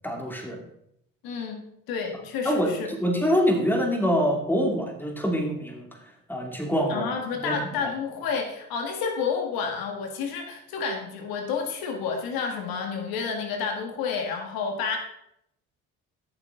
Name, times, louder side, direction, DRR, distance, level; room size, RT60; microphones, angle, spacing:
voice 1, 0.0-0.6 2.4-5.9 6.3-7.1 7.4-7.7, equal, 5° left, 1 dB, 2.7 m, -25 dB
voice 2, 1.2-1.6 1.9-2.9 6.9-15.0, left 5 dB, 75° left, 3 dB, 1.8 m, -30 dB
14.0 x 6.7 x 3.8 m, 0.76 s
supercardioid pair, 75°, 36 cm